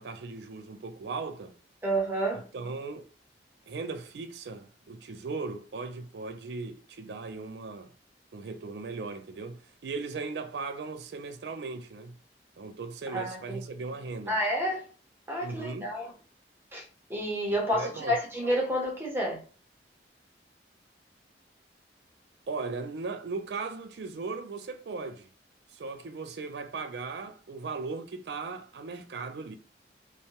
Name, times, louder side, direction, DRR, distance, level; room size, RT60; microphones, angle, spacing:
voice 1, 0.0-1.5 2.5-3.1 3.7-7.9 8.3-12.2 12.6-14.4 15.4-15.9 17.7-18.2 22.5-25.3 25.7-29.6, right 4 dB, 70° right, 0.4 m, -37 dB
voice 2, 1.8-2.5 13.1-13.6 14.3-14.9 15.3-16.1 16.7-16.8 17.1-19.4, equal, 15° right, 0.7 m, -29 dB
2.6 x 2.1 x 2.9 m
head